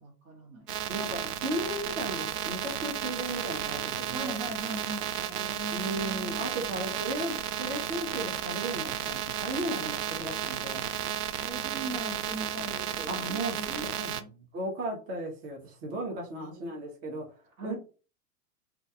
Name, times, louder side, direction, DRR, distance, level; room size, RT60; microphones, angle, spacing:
voice 1, 0.0-0.8 4.1-6.6 11.4-13.2 13.6-13.7 14.0-14.3 16.3-16.7 17.6-17.8, right 2 dB, 60° right, 1.1 m, -40 dB
sound 1, 0.7-14.2, right 10 dB, 85° right, 0.5 m, -33 dB
voice 2, 0.9-4.4 5.7-10.9 13.1-17.2 17.6-17.8, right 1 dB, 30° right, 0.6 m, -36 dB
2.3 x 2.2 x 2.7 m
hypercardioid pair, 125°, 46 cm